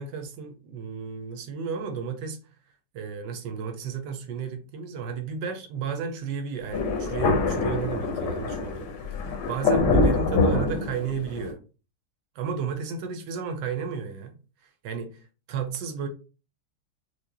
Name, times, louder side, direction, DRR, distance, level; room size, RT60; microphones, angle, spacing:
voice 1, 0.0-2.4 2.9-8.9 9.5-11.6 12.4-14.3 14.8-15.2 15.5-16.1, right 6 dB, 85° right, 1.3 m, -33 dB
Thunder, 6.7-11.5, left 3 dB, 80° left, 1.4 m, -25 dB
4.7 x 2.1 x 2.8 m
omnidirectional pair, 1.9 m